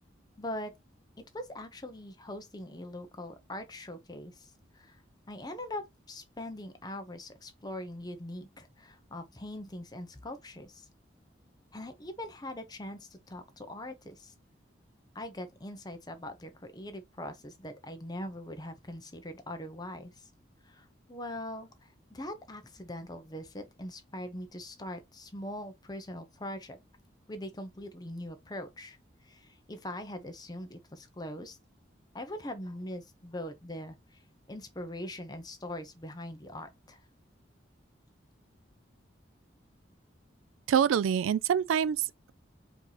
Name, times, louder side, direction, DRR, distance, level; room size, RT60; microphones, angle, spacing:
voice 1, 0.4-0.7 1.3-5.0 5.3-10.9 11.7-14.3 15.1-20.3 20.6-26.8 27.3-29.0 29.2-31.6 32.1-34.2 34.5-37.0, left 1 dB, 20° left, 0.7 m, -42 dB
voice 2, 40.7-42.3, right 8 dB, 90° right, 0.3 m, -26 dB
4.5 x 2.8 x 3.9 m
head